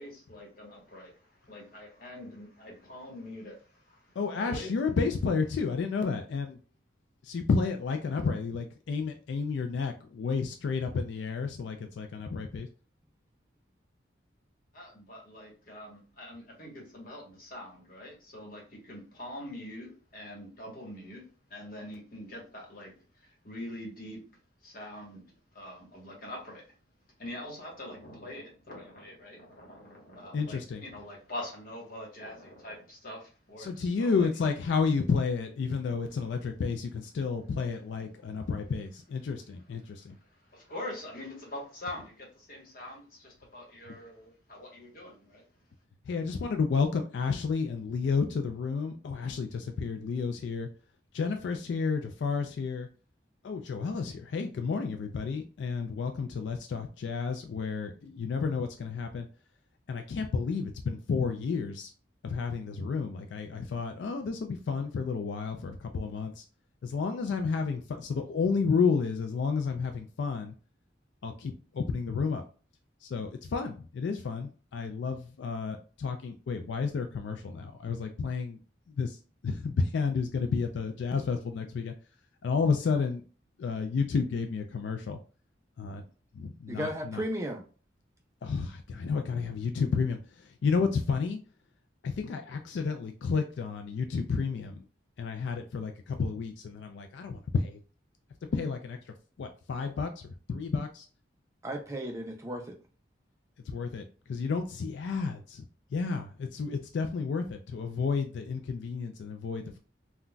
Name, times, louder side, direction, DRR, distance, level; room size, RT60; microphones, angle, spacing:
voice 1, 0.0-4.7 14.7-24.2 24.6-25.2 25.5-26.7 27.2-34.3 36.0-36.2 38.1-38.5 39.8-45.5, left 1 dB, 45° left, 1.1 m, -44 dB
voice 2, 4.2-6.6 7.2-12.7 30.3-30.8 33.6-40.1 46.1-50.7 51.1-52.9 53.4-59.3 59.9-61.9 62.2-66.4 66.8-70.5 71.2-72.4 73.0-78.6 79.0-79.2 79.4-81.9 82.4-83.2 83.6-85.2 85.8-86.0 86.3-87.2 88.4-91.4 92.0-94.8 95.2-97.8 98.5-99.0 99.4-100.2 100.5-101.1 103.7-104.0 104.3-105.6 105.9-109.8, left 5 dB, 70° left, 0.3 m, -31 dB
voice 3, 86.7-87.6 101.6-102.8, equal, 15° right, 0.3 m, -34 dB
3.8 x 2.2 x 2.2 m
head